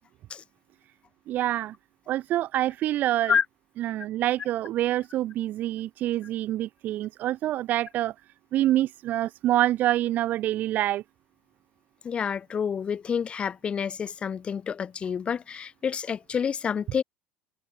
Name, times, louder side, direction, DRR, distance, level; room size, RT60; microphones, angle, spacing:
voice 1, 1.3-1.7 2.1-3.3 3.8-8.1 8.5-11.0, right 14 dB, 40° right, 0.4 m, -26 dB
voice 2, 12.0-17.0, left 7 dB, 25° left, 1.9 m, -28 dB
cardioid pair, 155°, 4 cm